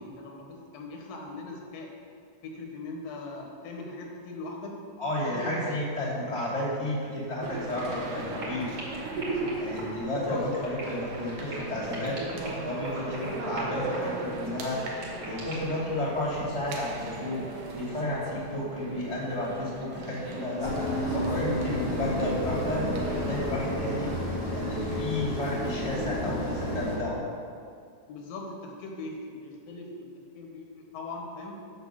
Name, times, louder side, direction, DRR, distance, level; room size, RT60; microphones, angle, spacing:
voice 1, 0.0-1.9 2.4-4.8 5.3-5.8 10.3-10.5 28.1-30.1 30.4-31.6, left 2 dB, 85° left, 1 dB, 3.0 m, -40 dB
voice 2, 5.0-8.7 9.6-27.2, left 1 dB, 10° right, -5 dB, 1.4 m, -32 dB
sound 1, 7.4-24.9, right 3 dB, 75° right, 2.6 m, -38 dB
sound 2, 8.3-15.9, right 1 dB, 55° right, 3.2 m, -41 dB
sound 3, 20.6-27.0, equal, 60° left, 0.6 m, -31 dB
7.9 x 6.6 x 6.2 m, 2.3 s
omnidirectional pair, 4.0 m